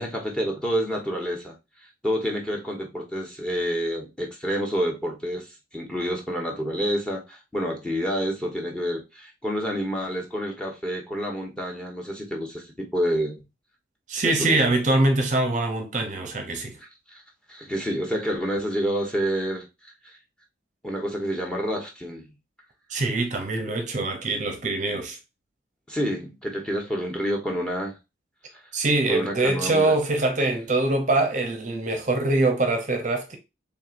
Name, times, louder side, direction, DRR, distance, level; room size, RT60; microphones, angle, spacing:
voice 1, 0.0-1.5 2.0-13.4 14.2-14.7 16.8-17.2 17.5-20.1 20.8-22.3 25.9-28.0 29.1-30.0, equal, 5° left, 1.0 m, -28 dB
voice 2, 14.1-16.8 22.9-25.2 28.7-33.4, right 2 dB, 40° right, 0.7 m, -23 dB
4.5 x 3.5 x 2.5 m
head